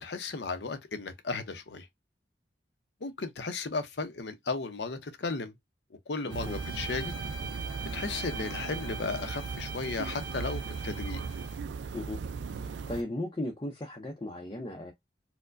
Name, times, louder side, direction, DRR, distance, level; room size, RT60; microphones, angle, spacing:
voice 1, 0.0-1.9 3.0-5.5 6.1-7.1 7.9-11.2, left 3 dB, 70° left, 0.7 m, -35 dB
voice 2, 6.2-6.6 11.9-12.2 12.5-14.9, left 1 dB, 25° left, 0.6 m, -37 dB
Bowed string instrument, 6.3-11.6, right 3 dB, 25° right, 1.8 m, -43 dB
sound 1, 6.3-13.0, right 5 dB, 85° right, 0.4 m, -37 dB
4.4 x 2.1 x 2.5 m
head